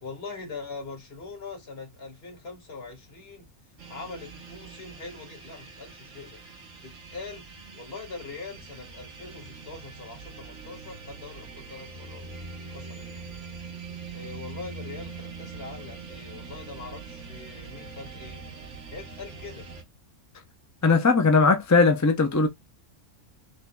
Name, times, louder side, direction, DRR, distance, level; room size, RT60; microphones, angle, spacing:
voice 1, 0.0-3.5 3.9-6.4 6.8-7.4 7.7-12.3 12.7-13.2 14.1-18.4 18.9-19.7, left 4 dB, 50° left, 2.0 m, -42 dB
sound 1, 3.8-19.8, right 4 dB, 65° right, 1.3 m, -43 dB
voice 2, 20.8-22.5, left 4 dB, 25° left, 0.3 m, -19 dB
3.9 x 3.8 x 2.3 m
omnidirectional pair, 1.3 m